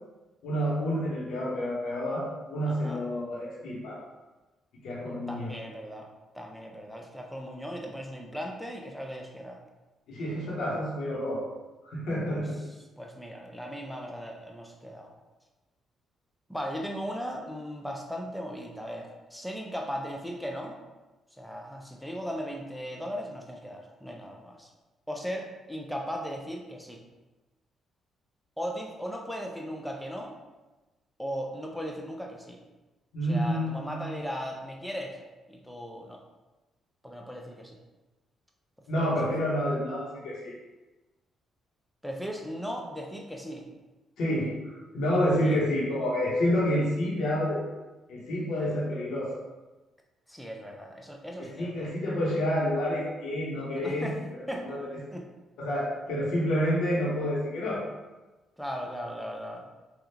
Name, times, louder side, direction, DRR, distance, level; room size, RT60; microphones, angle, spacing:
voice 1, 0.4-4.0 4.8-5.5 10.1-11.5 11.8-12.6 33.1-34.1 38.9-40.5 44.2-47.6 48.1-49.4 51.4-54.1 54.7-54.9 55.6-57.8, equal, 80° left, -6 dB, 0.9 m, -29 dB
voice 2, 2.7-3.0 5.3-6.1 6.3-9.6 12.3-15.1 16.5-20.8 21.3-24.7 25.1-27.0 28.6-30.3 31.2-32.6 33.2-35.2 35.5-36.2 37.0-37.8 38.9-39.1 42.0-43.7 45.4-45.6 50.3-51.9 53.8-54.2 54.5-54.7 55.1-55.2 58.6-59.7, equal, ahead, 0 dB, 0.5 m, -37 dB
3.4 x 2.4 x 2.8 m, 1.1 s
cardioid pair, 90°, 0 cm